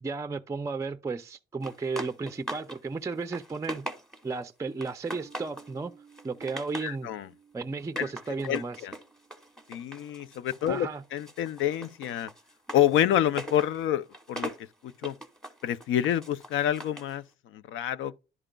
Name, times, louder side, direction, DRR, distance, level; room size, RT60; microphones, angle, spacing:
voice 1, 0.0-3.9 4.2-5.9 6.2-7.1 7.5-8.8 10.7-11.0, right 4 dB, 15° right, 0.4 m, -34 dB
sound 1, 1.6-2.8 3.1-4.4 4.8-5.7 6.1-7.0 7.8-10.8 11.1-17.1, right 1 dB, 5° left, 1.2 m, -41 dB
sound 2, 5.2-11.9, right 6 dB, 65° left, 4.2 m, -59 dB
voice 2, 6.8-7.3 8.0-8.1 8.4-8.9 9.7-12.3 12.7-14.5 14.8-15.2 15.6-17.2 17.5-18.1, left 11 dB, 80° left, 0.5 m, -28 dB
11.0 x 4.8 x 2.2 m
cardioid pair, 90°, 20 cm